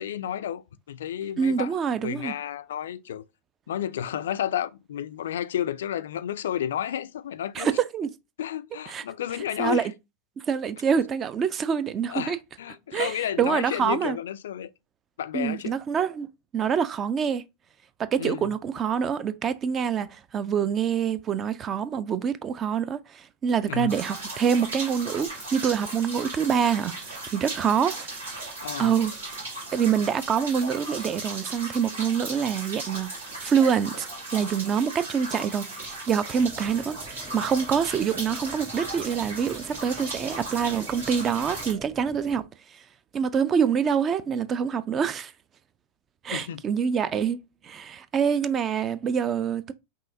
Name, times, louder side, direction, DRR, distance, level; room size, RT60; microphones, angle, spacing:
voice 1, 0.0-1.7 2.0-3.3 3.7-7.7 8.4-9.9 12.1-14.7 15.2-15.7 18.2-18.5 23.7-23.9 28.6-29.0 46.3-46.6, left 10 dB, 60° left, 0.3 m, -31 dB
voice 2, 1.4-2.3 7.6-8.1 8.9-9.0 9.6-9.9 10.5-12.4 12.9-14.2 15.3-16.3 16.5-17.4 18.0-28.1 28.8-29.1 29.7-34.1 34.3-42.4 43.1-45.3 46.2-49.7, right 7 dB, 25° right, 0.4 m, -26 dB
sound 1, 23.9-41.7, right 2 dB, 70° right, 1.9 m, -37 dB
sound 2, 36.3-42.4, right 2 dB, 10° right, 1.0 m, -46 dB
5.4 x 2.6 x 2.6 m
figure-of-eight pair, 90°, 0 cm